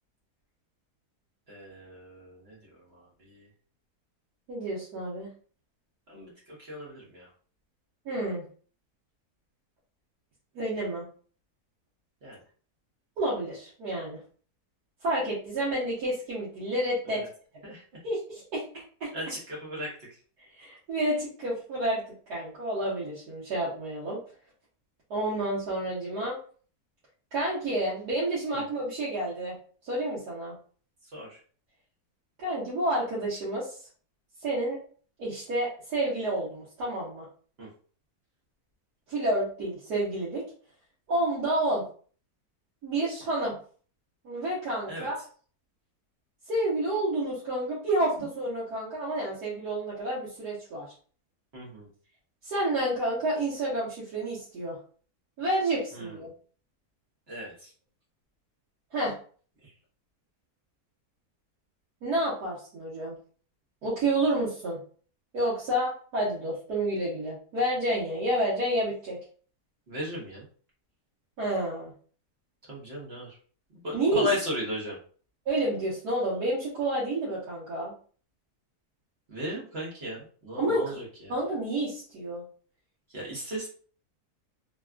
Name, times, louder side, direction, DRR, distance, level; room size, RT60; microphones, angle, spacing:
voice 1, 1.5-3.5 6.1-7.3 12.2-12.4 17.0-17.3 17.6-17.8 19.1-19.9 28.5-28.6 31.1-31.4 37.6-37.7 44.9-45.1 51.5-51.9 55.9-56.2 57.3-57.7 69.9-70.4 72.7-73.4 73.7-75.0 79.3-81.3 83.1-83.7, left 1 dB, 45° right, -4 dB, 1.0 m, -36 dB
voice 2, 4.5-5.3 8.0-8.4 10.5-11.0 13.2-14.2 15.0-17.2 18.0-18.6 19.0-19.1 20.4-22.0 22.3-24.2 25.1-26.4 27.3-29.5 29.8-30.5 32.4-33.8 34.4-34.8 35.2-37.3 39.1-40.4 41.1-41.8 42.8-43.5 44.2-45.2 46.5-50.9 52.4-54.8 55.4-56.3 58.9-59.1 62.0-63.2 63.8-64.8 65.3-69.2 71.4-71.9 73.9-74.3 75.5-77.9 80.6-81.0 81.3-82.4, right 1 dB, 80° right, -8 dB, 1.5 m, -29 dB
3.4 x 2.3 x 2.3 m, 0.43 s
omnidirectional pair, 1.7 m